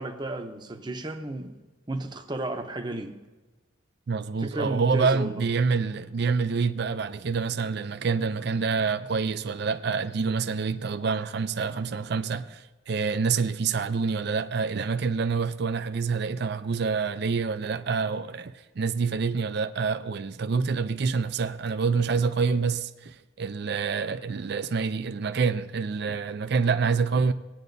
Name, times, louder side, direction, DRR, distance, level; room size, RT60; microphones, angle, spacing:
voice 1, 0.0-1.6 1.9-3.2 4.4-5.4, right 2 dB, 20° right, 0.7 m, -33 dB
voice 2, 4.1-27.3, right 5 dB, 55° right, 0.4 m, -27 dB
17.5 x 9.4 x 2.7 m
head